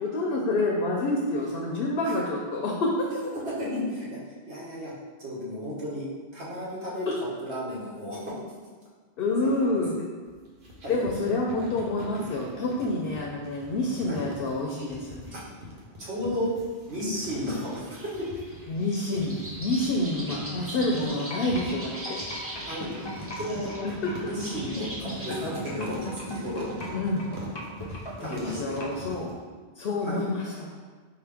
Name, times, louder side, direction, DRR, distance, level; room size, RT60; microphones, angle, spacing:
voice 1, 0.0-3.1 7.1-7.2 9.2-10.0 10.9-15.4 18.7-22.2 23.8-24.1 26.9-27.3 27.9-29.3 29.8-30.7, left 2 dB, 65° left, -1 dB, 0.7 m, -28 dB
voice 2, 3.4-4.1 4.5-4.9 5.2-6.0 6.3-7.1 7.4-8.3 9.4-9.8 10.8-11.0 14.1-14.2 15.3-15.4 16.0-16.5 16.9-18.3 20.2-20.3 22.7-22.9 23.4-23.8 24.2-26.0 26.2-26.6 28.2-28.8 30.0-30.2, left 1 dB, 75° right, -7 dB, 1.4 m, -33 dB
sound 1, 10.2-29.4, equal, 55° right, 0.9 m, -44 dB
sound 2, 17.2-25.3, right 1 dB, 15° right, 0.6 m, -41 dB
sound 3, 21.1-29.0, equal, 35° left, 0.4 m, -37 dB
4.2 x 2.8 x 3.4 m, 1.5 s
omnidirectional pair, 1.1 m